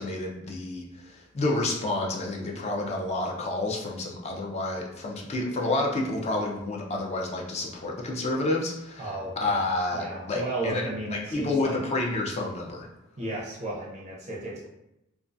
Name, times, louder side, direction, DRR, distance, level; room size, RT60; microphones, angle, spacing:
voice 1, 0.0-9.1 9.4-10.8 11.1-12.9, left 2 dB, 30° left, 0 dB, 0.4 m, -29 dB
voice 2, 9.0-9.7 9.9-11.8 13.2-14.7, right 1 dB, 30° right, -5 dB, 0.4 m, -34 dB
2.3 x 2.2 x 2.5 m, 0.86 s
head